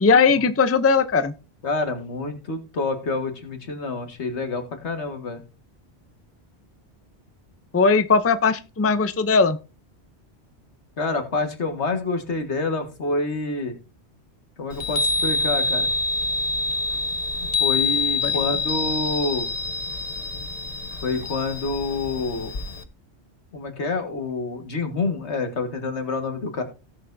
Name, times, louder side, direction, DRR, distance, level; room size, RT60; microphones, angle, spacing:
voice 1, 0.0-1.3 7.7-9.6 18.2-18.3, left 4 dB, 20° left, 0.4 m, -19 dB
voice 2, 1.6-5.4 11.0-13.7 14.6-15.9 17.6-19.5 21.0-22.5 23.5-26.6, left 3 dB, 80° left, 2.0 m, -27 dB
Chime, 14.7-22.8, left 3 dB, 35° left, 1.1 m, -26 dB
17.0 x 6.6 x 2.7 m
omnidirectional pair, 1.1 m